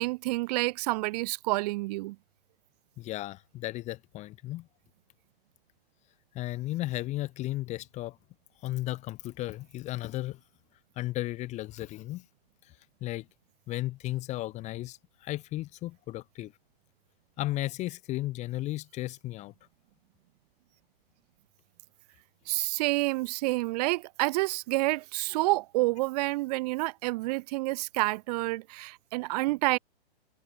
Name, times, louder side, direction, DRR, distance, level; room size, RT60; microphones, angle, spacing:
voice 1, 0.0-2.2 22.5-29.8, right 22 dB, 40° right, 2.3 m, -28 dB
voice 2, 3.0-4.7 6.3-8.2 8.6-10.4 11.0-12.2 12.6-12.7 13.0-13.3 13.7-16.5 17.4-19.5, left 17 dB, 20° left, 1.3 m, -34 dB
hypercardioid pair, 140°, 31 cm